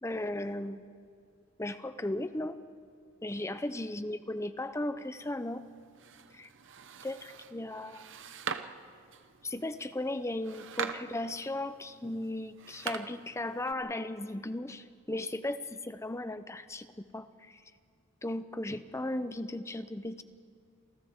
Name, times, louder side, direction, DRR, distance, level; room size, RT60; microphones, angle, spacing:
voice 1, 0.0-0.8 1.6-2.6 3.2-5.7 6.3-6.5 7.0-8.2 9.4-17.6 18.2-20.2, left 1 dB, 15° left, 12 dB, 0.6 m, -36 dB
sound 1, 5.2-13.7, right 6 dB, 55° right, 0.8 m, -43 dB
28.5 x 28.0 x 3.6 m, 2.3 s
head